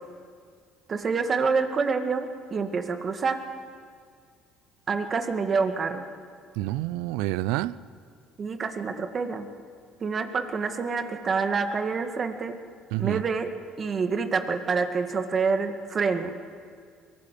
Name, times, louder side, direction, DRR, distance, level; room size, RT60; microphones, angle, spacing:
voice 1, 0.9-3.4 4.9-6.1 8.4-9.5 10.0-12.5 13.0-13.5 13.8-16.4, right 5 dB, 40° right, 7 dB, 2.1 m, -27 dB
voice 2, 6.6-7.8 12.9-13.2, right 16 dB, 85° right, 19 dB, 0.5 m, -28 dB
22.5 x 18.5 x 8.5 m, 2.1 s
supercardioid pair, 90°, 0 cm